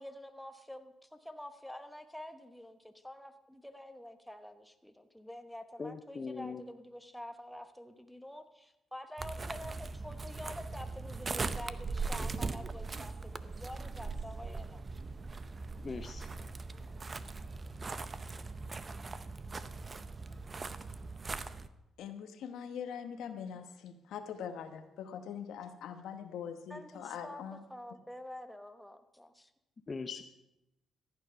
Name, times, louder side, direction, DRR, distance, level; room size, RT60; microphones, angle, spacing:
voice 1, 0.0-14.8 26.7-27.4 27.7-29.5, left 1 dB, 5° left, 7 dB, 1.0 m, -48 dB
voice 2, 5.8-6.6 15.7-16.3 29.9-30.2, left 4 dB, 30° left, 6 dB, 0.7 m, -41 dB
sound 1, 9.2-21.7, right 4 dB, 30° right, 0.6 m, -40 dB
voice 3, 22.0-27.6 30.1-30.2, left 8 dB, 80° left, 8 dB, 1.1 m, -43 dB
14.5 x 9.1 x 5.6 m, 0.91 s
cardioid pair, 90°, 0 cm